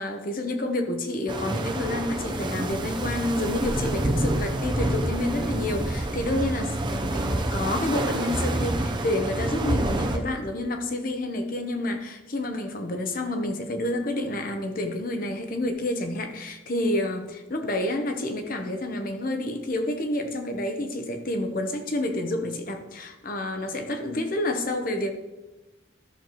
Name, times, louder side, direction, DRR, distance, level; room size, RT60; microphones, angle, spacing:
voice 1, 0.0-25.1, left 1 dB, 45° left, 6 dB, 0.9 m, -29 dB
sound 1, 1.3-10.2, right 1 dB, 25° right, 0.6 m, -28 dB
13.0 x 6.6 x 3.0 m, 1.1 s
head